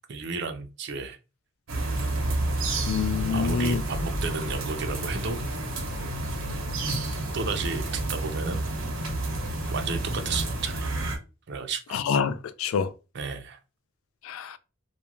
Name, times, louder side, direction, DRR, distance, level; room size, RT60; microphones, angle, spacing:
voice 1, 0.1-1.2 3.3-5.4 7.3-8.7 9.7-11.0 11.5-12.0 13.1-13.6, right 5 dB, 55° right, 0.4 m, -33 dB
sound 1, 1.7-11.2, right 1 dB, 85° right, 0.7 m, -30 dB
voice 2, 2.9-3.8 11.9-12.9 14.2-14.6, left 6 dB, 85° left, 0.3 m, -26 dB
2.4 x 2.2 x 2.9 m
head